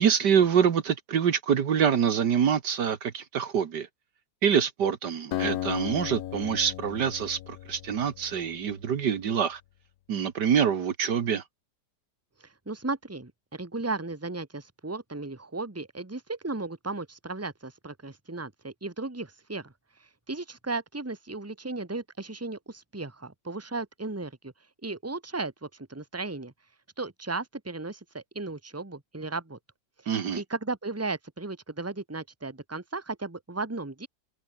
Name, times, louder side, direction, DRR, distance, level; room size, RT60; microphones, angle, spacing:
voice 1, 0.0-3.9 4.4-9.6 10.1-11.4 30.1-30.4, right 8 dB, 65° right, 1.9 m, -25 dB
Acoustic guitar, 5.3-8.9, left 14 dB, 70° left, 1.0 m, -35 dB
voice 2, 12.4-19.7 20.0-24.5 24.8-26.5 27.0-29.6 30.0-34.1, right 3 dB, 10° right, 1.9 m, -35 dB
omnidirectional pair, 2.0 m